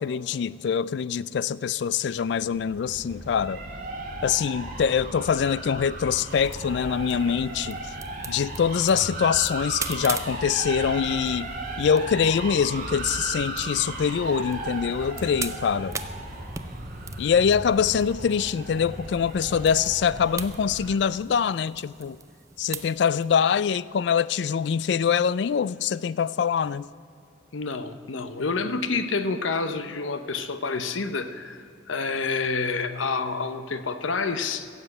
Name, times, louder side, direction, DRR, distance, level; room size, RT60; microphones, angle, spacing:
voice 1, 0.0-3.6 4.2-7.8 8.3-11.5 11.8-16.0 17.2-22.2 22.6-26.9, left 7 dB, 60° left, 0.3 m, -24 dB
sound 1, 2.1-20.9, right 2 dB, 45° right, 2.2 m, -36 dB
sound 2, 6.3-23.4, right 5 dB, 15° right, 0.5 m, -42 dB
voice 2, 27.5-31.6 31.9-34.7, left 4 dB, 85° left, 0.8 m, -28 dB
15.5 x 7.5 x 8.0 m
head